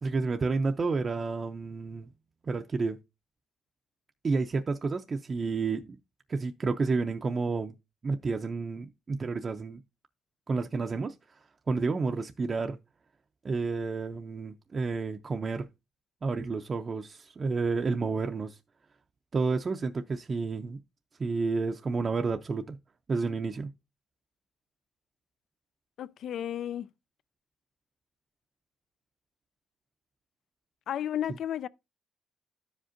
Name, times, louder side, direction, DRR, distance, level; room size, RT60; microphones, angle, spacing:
voice 1, 0.0-2.1 2.4-3.0 4.2-6.0 6.3-7.7 8.0-9.8 10.5-12.8 13.4-15.7 16.2-18.6 19.3-20.8 21.2-22.8 23.1-23.7, right 4 dB, 35° right, 0.5 m, -30 dB
voice 2, 26.0-26.9 30.9-31.7, left 10 dB, 70° left, 0.3 m, -33 dB
13.0 x 5.0 x 2.5 m
cardioid pair, 105°, 0 cm